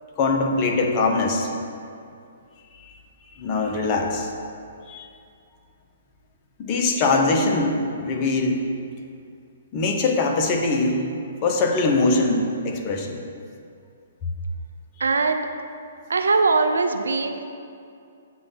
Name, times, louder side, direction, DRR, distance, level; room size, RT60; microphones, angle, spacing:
voice 1, 0.2-1.5 2.8-2.9 3.3-4.3 4.9-5.1 6.6-8.6 9.7-11.0 11.4-13.2, left 3 dB, 35° left, 1 dB, 0.9 m, -22 dB
voice 2, 15.0-15.5 16.1-17.5, right 4 dB, 80° right, 7 dB, 0.5 m, -21 dB
7.8 x 3.3 x 5.6 m, 2.4 s
hypercardioid pair, 130°, 0 cm